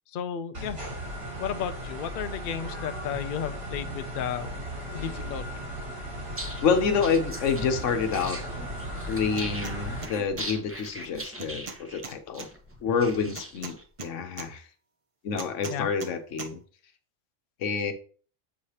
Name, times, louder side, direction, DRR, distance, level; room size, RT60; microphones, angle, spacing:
voice 1, 0.1-0.8 1.4-4.5 4.9-5.7 15.7-15.9, left 8 dB, 60° left, 11 dB, 0.6 m, -33 dB
sound 1, 0.5-10.1, equal, 70° right, 2.8 m, -36 dB
sound 2, 6.2-13.8, right 1 dB, 10° right, 0.8 m, -41 dB
voice 2, 6.6-8.4 9.1-12.5 12.8-14.7 15.2-16.6 17.6-17.9, left 5 dB, 80° left, 8 dB, 1.1 m, -28 dB
sound 3, 9.3-9.8 10.0-10.5 11.4-12.5 13.4-14.5 15.4-16.1 16.4-16.5, right 4 dB, 45° right, 0.4 m, -40 dB
7.0 x 4.8 x 2.8 m, 0.42 s
omnidirectional pair, 1.3 m